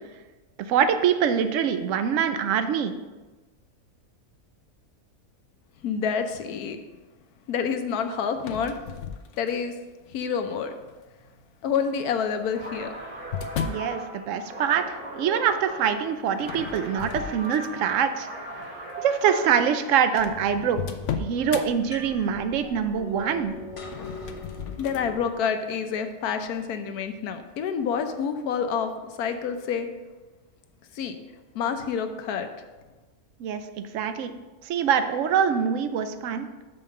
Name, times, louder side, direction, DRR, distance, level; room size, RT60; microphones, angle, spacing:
voice 1, 0.6-2.9 13.6-18.3 19.0-20.8 21.2-23.5 33.4-34.3 34.6-36.5, right 7 dB, 65° right, 10 dB, 0.9 m, -24 dB
voice 2, 5.8-6.8 7.5-8.7 9.4-9.7 10.1-10.7 11.6-12.9 24.8-29.9 31.0-31.2 31.5-32.5, left 6 dB, 85° left, 7 dB, 1.2 m, -28 dB
sound 1, 8.3-9.8 10.5-10.9 12.0-13.9 16.4-17.9 18.4-18.7 19.4-19.5 19.7-19.8 20.1-21.7 23.8-25.1, left 7 dB, 65° left, 0.8 m, -35 dB
sound 2, 12.5-19.9, right 1 dB, 90° right, 2.6 m, -38 dB
sound 3, 20.2-25.3, left 3 dB, 40° left, 0.4 m, -41 dB
5.7 x 5.5 x 6.5 m, 1.2 s
omnidirectional pair, 1.6 m